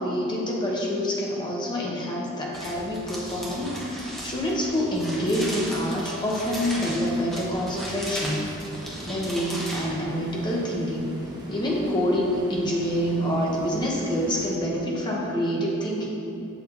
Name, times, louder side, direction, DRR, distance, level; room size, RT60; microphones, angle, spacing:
voice 1, 0.0-8.5 9.0-11.2 11.5-16.1, equal, 20° left, -3 dB, 1.2 m, -27 dB
sound 1, 2.5-9.9, equal, ahead, 1.2 m, -36 dB
sound 2, 6.6-14.6, equal, 20° right, 0.9 m, -42 dB
7.3 x 7.1 x 4.1 m, 2.8 s
head